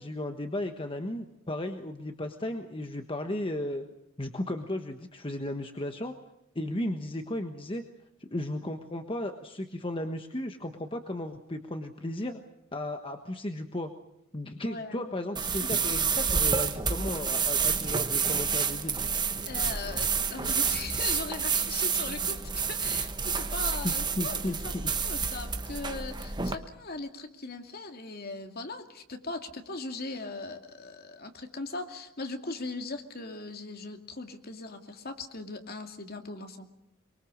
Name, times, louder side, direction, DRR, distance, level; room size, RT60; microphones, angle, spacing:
voice 1, 0.0-3.8 4.2-6.1 6.5-7.8 8.3-12.4 12.7-13.9 14.3-19.0 23.8-24.9, left 1 dB, 25° left, 6 dB, 1.3 m, -35 dB
voice 2, 14.7-15.1 15.6-15.8 19.5-24.7 25.0-36.7, left 3 dB, 50° left, 5 dB, 2.4 m, -39 dB
sound 1, 15.3-26.5, right 6 dB, 20° right, 1.3 m, -29 dB
24.0 x 23.5 x 6.5 m, 0.82 s
head